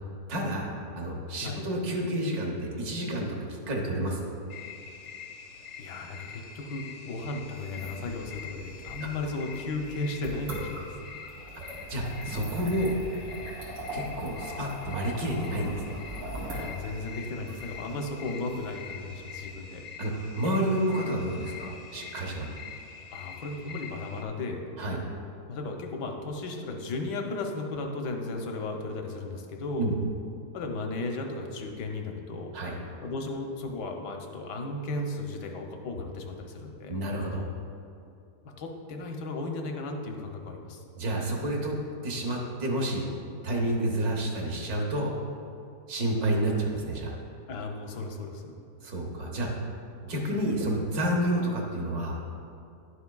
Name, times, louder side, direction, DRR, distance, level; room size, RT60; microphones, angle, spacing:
voice 1, 0.3-3.4 3.7-4.3 9.0-9.1 11.9-13.0 13.9-16.0 20.0-22.5 24.8-25.0 29.8-29.9 32.5-32.7 36.9-37.4 40.9-41.7 42.0-43.1 43.4-45.1 45.9-47.2 48.8-49.7 50.0-52.2, right 1 dB, 65° right, 0 dB, 1.5 m, -29 dB
sound 1, 4.5-24.2, left 6 dB, 60° left, 0.7 m, -45 dB
voice 2, 5.8-10.9 16.5-19.8 23.1-24.6 25.5-29.9 30.5-32.5 33.0-37.0 38.6-40.8 47.5-48.4, left 2 dB, 80° left, 3 dB, 1.4 m, -35 dB
sound 2, 7.6-19.5, right 1 dB, 90° right, 2.7 m, -41 dB
11.0 x 7.0 x 2.3 m, 2.5 s
omnidirectional pair, 1.8 m